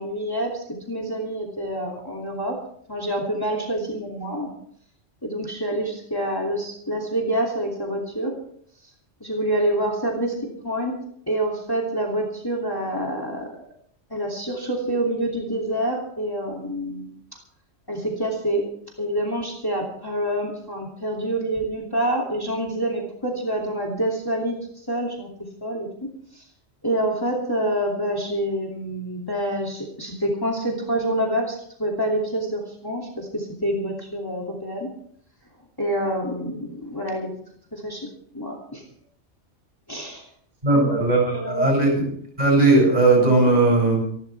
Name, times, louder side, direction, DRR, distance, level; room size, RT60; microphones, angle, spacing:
voice 1, 0.0-2.5 2.9-4.5 5.2-8.3 9.2-10.3 10.6-10.9 11.3-13.5 14.1-17.1 17.9-18.6 19.0-24.6 24.9-25.3 25.6-25.9 26.3-26.4 26.8-34.9 35.8-37.3 37.7-38.1 38.3-38.8 39.9-40.2 40.7-41.1 41.3-41.7, right 1 dB, 20° left, -2 dB, 2.8 m, -27 dB
voice 2, 40.6-42.0 42.4-44.0, right 2 dB, 35° right, -2 dB, 7.8 m, -18 dB
28.0 x 12.0 x 3.5 m, 0.64 s
omnidirectional pair, 1.3 m